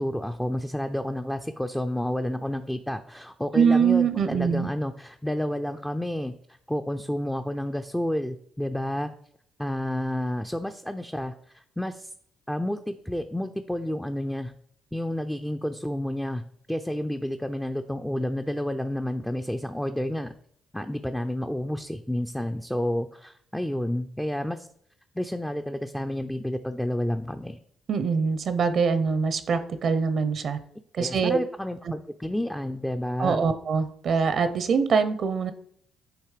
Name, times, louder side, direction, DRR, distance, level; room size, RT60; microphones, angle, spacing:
voice 1, 0.0-6.3 6.7-9.1 9.6-12.1 12.5-14.5 14.9-20.3 20.7-24.7 25.1-27.6 31.0-33.4, left 1 dB, 5° left, 7 dB, 0.4 m, -30 dB
voice 2, 3.5-4.7 27.9-30.6 30.9-31.4 33.2-35.5, right 6 dB, 60° right, 11 dB, 0.6 m, -23 dB
8.8 x 3.0 x 4.9 m, 0.65 s
cardioid pair, 90°, 0 cm